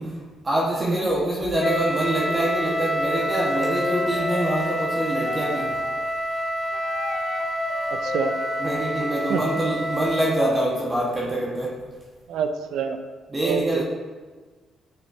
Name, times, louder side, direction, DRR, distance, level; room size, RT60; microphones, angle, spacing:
voice 1, 0.0-5.8 8.6-11.7 13.3-13.8, right 1 dB, 25° right, -5 dB, 1.4 m, -25 dB
Wind instrument woodwind instrument, 1.6-10.5, equal, 25° left, 0.6 m, -27 dB
Wind instrument woodwind instrument 2, 2.2-5.9 6.7-9.3, left 5 dB, 75° left, 0.5 m, -35 dB
voice 2, 7.9-8.3 9.3-9.4 12.3-13.0 13.4-13.8, right 6 dB, 80° right, 8 dB, 0.4 m, -27 dB
9.3 x 4.3 x 2.8 m, 1.4 s
cardioid pair, 90°, 0 cm